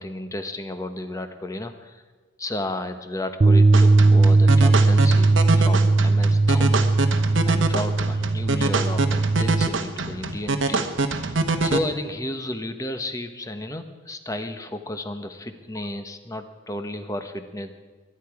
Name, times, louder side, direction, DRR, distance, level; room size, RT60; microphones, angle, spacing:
voice 1, 0.0-2.0 2.4-6.8 7.5-11.3 11.6-17.8, left 1 dB, 15° left, 8 dB, 1.0 m, -33 dB
Bass guitar, 3.4-9.7, right 3 dB, 30° right, 0.3 m, -18 dB
sound 1, 3.7-11.8, right 3 dB, 65° right, 1.1 m, -25 dB
22.5 x 10.5 x 4.8 m, 1.4 s
head